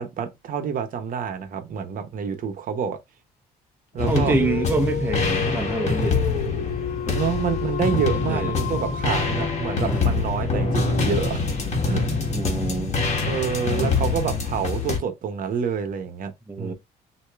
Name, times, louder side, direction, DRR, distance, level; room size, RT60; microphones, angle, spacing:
voice 1, 0.0-3.0 3.9-4.4 7.1-11.5 11.8-12.0 13.2-16.3 16.6-16.7, right 7 dB, 55° right, 0.8 m, -27 dB
Dog, 4.0-10.4, left 8 dB, 80° left, 0.7 m, -31 dB
sound 1, 4.0-15.0, left 3 dB, 40° left, 1.5 m, -25 dB
voice 2, 4.1-6.3 7.1-7.2 8.2-8.5 9.8-10.2 12.3-12.9 16.5-16.7, right 3 dB, 10° right, 0.7 m, -26 dB
6.3 x 2.7 x 2.4 m
cardioid pair, 110°, 17 cm